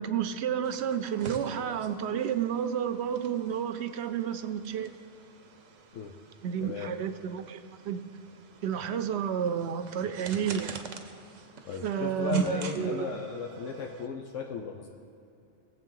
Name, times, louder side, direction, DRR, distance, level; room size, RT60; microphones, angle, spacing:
voice 1, 0.0-4.9 6.4-8.0 8.6-10.8 11.8-13.1, right 8 dB, 65° right, 11 dB, 0.8 m, -31 dB
sound 1, 0.6-14.1, right 5 dB, 90° right, 1.2 m, -47 dB
voice 2, 6.6-6.9 11.6-14.9, left 7 dB, 80° left, 2 dB, 1.1 m, -36 dB
19.0 x 7.5 x 3.8 m, 2.8 s
omnidirectional pair, 1.3 m